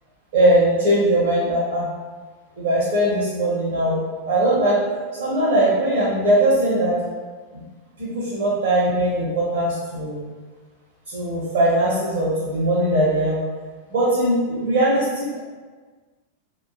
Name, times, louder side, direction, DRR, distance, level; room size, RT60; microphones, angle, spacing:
voice 1, 0.3-1.9 2.6-4.8 5.1-7.0 7.5-7.6 8.0-10.3 11.1-13.4 13.9-15.4, right 1 dB, 60° right, -7 dB, 0.6 m, -20 dB
2.5 x 2.1 x 2.4 m, 1.4 s
figure-of-eight pair, 90°, 0 cm